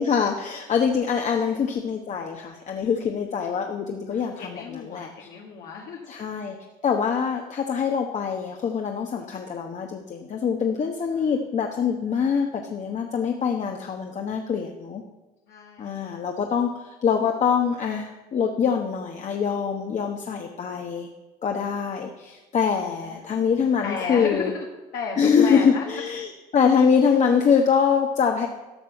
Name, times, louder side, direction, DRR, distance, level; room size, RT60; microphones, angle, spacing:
voice 1, 0.0-5.3 6.1-6.6 6.8-15.0 15.8-21.1 21.4-24.5 25.2-28.5, left 6 dB, 45° left, 3 dB, 1.1 m, -24 dB
voice 2, 4.1-6.1 11.1-11.2 15.5-16.1 23.2-23.3 23.8-24.7 24.9-25.9, left 5 dB, 70° left, -1 dB, 1.5 m, -34 dB
12.5 x 6.2 x 7.1 m, 1.1 s
cardioid pair, 95°, 17 cm